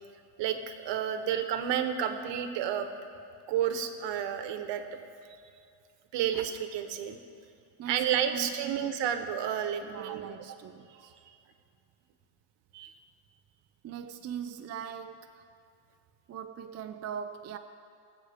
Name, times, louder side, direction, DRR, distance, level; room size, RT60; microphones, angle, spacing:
voice 1, 0.4-2.9 3.5-4.8 6.1-7.2 7.9-10.3 11.1-11.4 12.7-12.9, right 9 dB, 60° right, 7 dB, 1.2 m, -31 dB
voice 2, 7.8-9.0 9.8-11.1 13.8-15.4 16.3-17.6, right 8 dB, 35° right, 6 dB, 0.5 m, -41 dB
23.5 x 8.0 x 3.6 m, 2.5 s
cardioid pair, 120°, 48 cm